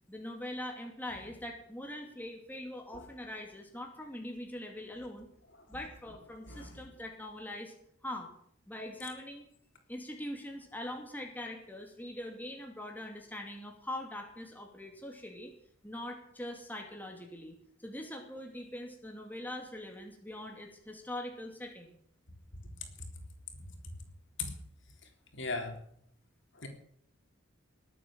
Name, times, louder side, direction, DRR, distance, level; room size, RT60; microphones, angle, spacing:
voice 1, 0.1-5.3 5.7-7.7 8.0-8.3 8.7-9.5 9.9-15.5 15.8-22.0, left 1 dB, 10° left, 2 dB, 2.6 m, -42 dB
voice 2, 25.3-25.8 26.6-26.7, left 3 dB, 65° left, 3 dB, 3.8 m, -37 dB
20.0 x 8.7 x 7.6 m, 0.65 s
head